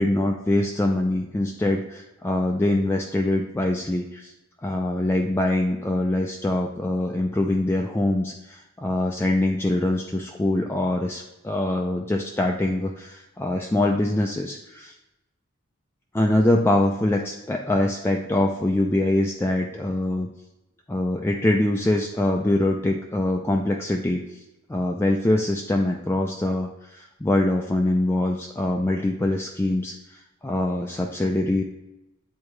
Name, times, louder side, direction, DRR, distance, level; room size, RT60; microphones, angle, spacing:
voice 1, 0.0-4.3 4.6-14.9 16.1-20.3 20.9-24.4 24.7-31.6, left 1 dB, 10° left, 1 dB, 0.3 m, -24 dB
8.2 x 3.6 x 3.2 m, 0.94 s
head